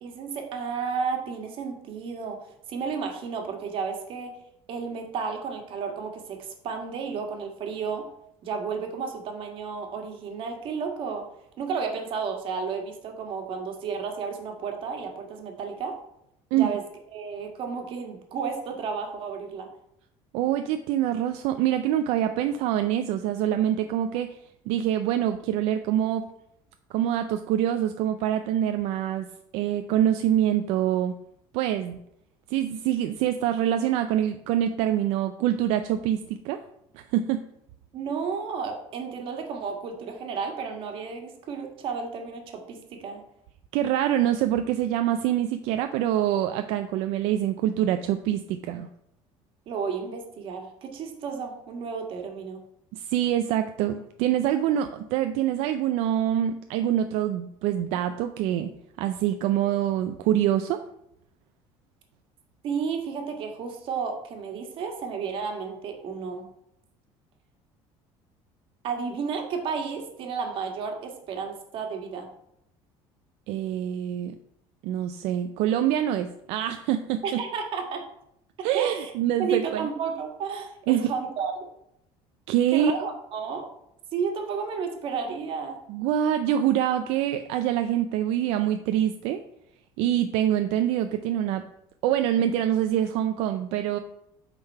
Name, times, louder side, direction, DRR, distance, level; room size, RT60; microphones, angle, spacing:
voice 1, 0.0-4.3 4.7-8.1 8.4-11.2 11.6-15.9 16.5-16.8 17.1-19.7 37.9-43.2 49.7-52.6 62.6-66.5 68.8-72.3 77.2-78.0 78.7-79.1 79.4-81.7 82.7-83.7 84.1-85.8, right 5 dB, 55° right, 3 dB, 1.6 m, -32 dB
voice 2, 20.3-24.4 24.7-26.3 26.9-29.3 29.5-31.1 31.5-32.0 32.5-36.6 36.9-37.4 43.7-48.9 52.9-58.7 59.0-60.8 73.5-74.3 74.8-77.4 78.6-79.9 80.9-81.1 82.5-82.9 85.9-89.4 90.0-91.6 92.0-94.0, right 11 dB, 80° right, 8 dB, 0.4 m, -25 dB
8.0 x 3.8 x 5.4 m, 0.78 s
cardioid pair, 140°, 11 cm